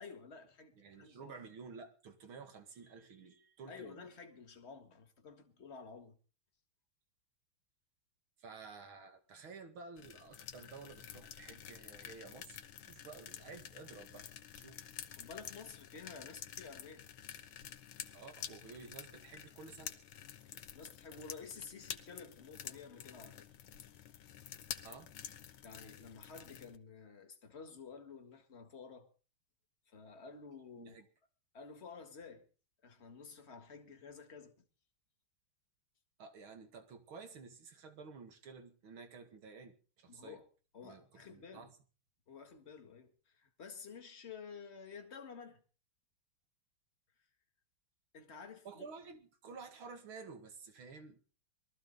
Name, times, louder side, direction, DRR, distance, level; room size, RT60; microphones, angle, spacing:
voice 1, 0.0-1.4 3.7-6.2 15.1-17.1 20.4-23.5 25.6-29.1 29.9-31.0 31.5-32.5 32.8-34.5 40.1-40.4 40.7-41.7 42.3-45.6 48.1-48.9, left 5 dB, 30° left, 1.9 m, -52 dB
voice 2, 0.8-4.1 8.4-14.3 14.5-14.9 18.1-19.9 24.8-25.1 30.8-31.1 36.2-40.4 40.8-41.7 48.6-51.2, right 4 dB, 75° right, 2.7 m, -52 dB
sound 1, 10.0-26.8, left 10 dB, 80° left, 1.9 m, -50 dB
21.5 x 14.0 x 4.0 m
omnidirectional pair, 2.3 m